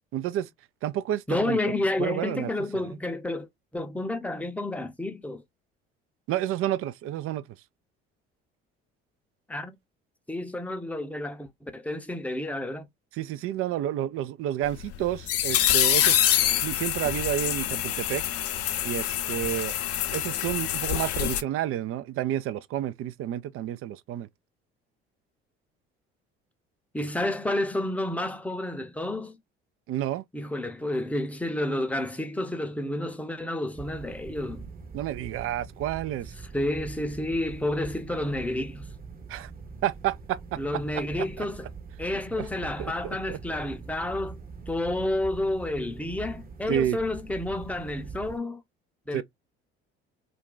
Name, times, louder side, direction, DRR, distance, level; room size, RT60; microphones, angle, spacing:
voice 1, 0.1-0.5 0.8-2.5 2.7-2.9 6.3-7.4 13.1-16.4 16.6-18.2 18.8-19.7 20.1-24.3 29.9-30.2 34.9-36.3 39.3-39.5 39.8-40.6 40.9-41.5 42.1-43.4 46.7-47.0 49.1-49.2, right 12 dB, 50° right, 0.4 m, -30 dB
voice 2, 1.3-3.5 3.7-5.4 9.5-9.7 10.3-12.9 26.9-29.4 30.3-34.7 36.5-38.9 40.6-41.7 42.0-44.4 44.7-48.6 49.1-49.2, left 1 dB, 5° left, 0.6 m, -30 dB
sound 1, 14.7-21.4, left 11 dB, 50° left, 0.6 m, -26 dB
sound 2, 33.7-48.4, right 4 dB, 30° right, 0.9 m, -43 dB
2.5 x 2.2 x 3.8 m
hypercardioid pair, 55°, 30 cm